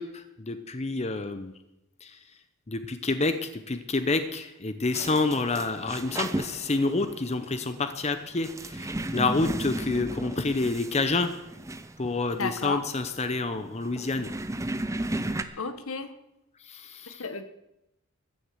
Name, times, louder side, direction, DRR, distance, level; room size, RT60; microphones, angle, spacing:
voice 1, 0.0-1.5 2.0-2.2 2.7-11.3 12.0-14.3 15.2-15.7 16.6-17.3, left 3 dB, 30° left, 9 dB, 0.8 m, -28 dB
sound 1, 4.9-15.4, right 1 dB, 15° right, 0.7 m, -35 dB
voice 2, 12.4-12.8 15.6-16.1 17.2-17.4, left 4 dB, 70° left, 10 dB, 1.2 m, -32 dB
14.5 x 10.0 x 7.6 m, 0.90 s
head